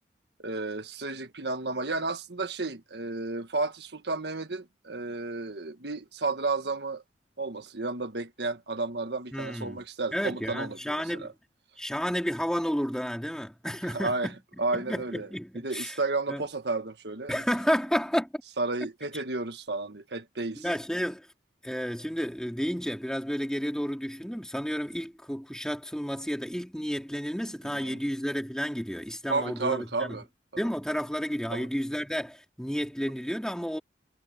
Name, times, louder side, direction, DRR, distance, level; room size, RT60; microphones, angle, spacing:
voice 1, 0.4-7.0 7.4-11.3 13.9-14.3 14.6-15.3 15.6-17.3 18.6-20.6 27.6-28.0 29.3-30.2 30.5-30.6 31.5-31.7, right 3 dB, 70° right, 1.6 m, -32 dB
voice 2, 9.3-9.8 10.1-11.3 11.8-14.3 14.7-16.0 16.3-16.4 17.3-18.3 20.5-21.3 21.6-30.2 30.6-33.8, equal, 5° left, 3.4 m, -31 dB
head